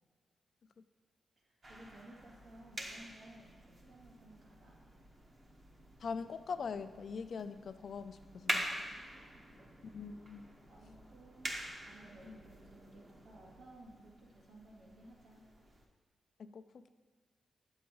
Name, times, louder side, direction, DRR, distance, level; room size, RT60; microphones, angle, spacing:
voice 1, 1.4-5.0 8.5-10.0 10.7-11.5 11.8-15.4, right 1 dB, 80° right, -5 dB, 2.3 m, -58 dB
sound 1, 1.6-15.8, right 1 dB, 45° right, 1.1 m, -46 dB
voice 2, 6.0-8.7 9.9-10.5 12.3-12.4 16.4-16.9, left 5 dB, 70° left, 10 dB, 0.4 m, -42 dB
8.3 x 7.2 x 3.0 m, 1.5 s
cardioid pair, 60°, 0 cm